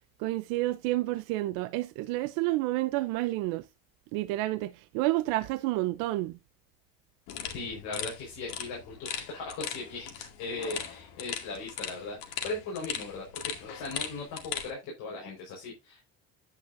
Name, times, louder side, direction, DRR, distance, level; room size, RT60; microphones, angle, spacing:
voice 1, 0.2-3.6 4.1-6.4, right 18 dB, 75° right, 0.7 m, -29 dB
sound 1, 7.3-14.7, left 9 dB, 80° left, 2.2 m, -39 dB
voice 2, 7.5-16.1, left 3 dB, 60° left, 4.8 m, -38 dB
9.8 x 9.0 x 2.6 m
cardioid pair, 155°, 32 cm